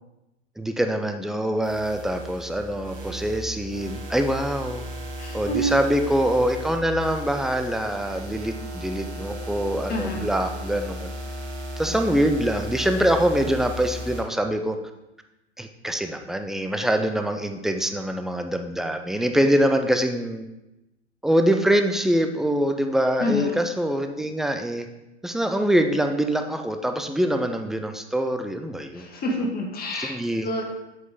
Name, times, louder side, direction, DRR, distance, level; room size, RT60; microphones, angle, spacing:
voice 1, 0.6-4.8 5.3-11.1 11.8-14.8 15.6-20.4 21.2-24.9 25.2-29.1 29.9-30.5, right 1 dB, ahead, 6 dB, 0.4 m, -24 dB
sound 1, 1.6-14.2, equal, 70° right, 2.0 m, -35 dB
voice 2, 5.2-5.7 9.9-10.3 11.9-12.0 23.2-23.6 28.9-30.1 30.4-30.6, left 1 dB, 25° left, 0 dB, 1.8 m, -27 dB
7.7 x 5.5 x 3.8 m, 0.95 s
hypercardioid pair, 95°, 34 cm